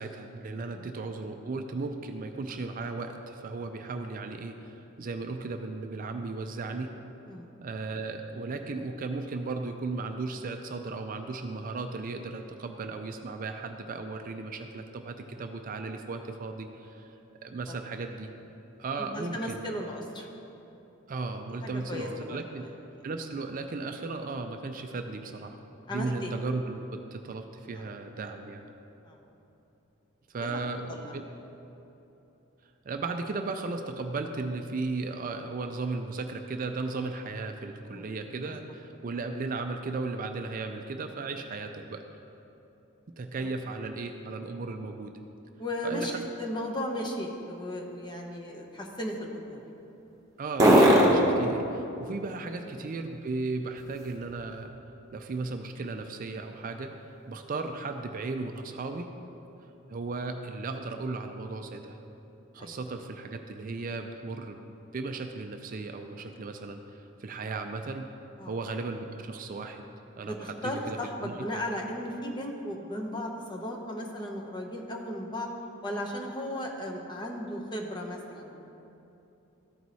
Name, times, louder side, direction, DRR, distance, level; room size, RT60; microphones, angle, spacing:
voice 1, 0.0-6.9 7.6-17.1 17.4-18.3 18.8-19.6 21.1-22.6 23.0-25.6 25.9-28.7 30.3-31.2 32.9-42.0 43.2-45.1 45.8-46.2 50.4-54.8 55.1-56.9 57.3-59.1 59.9-62.0 62.5-64.7 64.9-68.1 68.5-69.8 70.2-71.5, right 3 dB, 40° right, 6 dB, 0.4 m, -36 dB
voice 2, 19.0-20.3 21.6-22.7 25.9-26.3 27.8-27.9 29.0-29.2 30.4-30.6 30.9-31.1 37.9-38.0 38.5-38.6 43.4-43.5 45.6-49.6 52.6-52.7 62.6-62.8 68.4-68.5 70.2-75.5 75.8-78.5, left 1 dB, 20° left, 0 dB, 0.8 m, -36 dB
sound 1, 45.6-54.7 55.1-58.9, equal, 15° right, 1.1 m, -29 dB
13.5 x 4.6 x 4.1 m, 3.0 s
head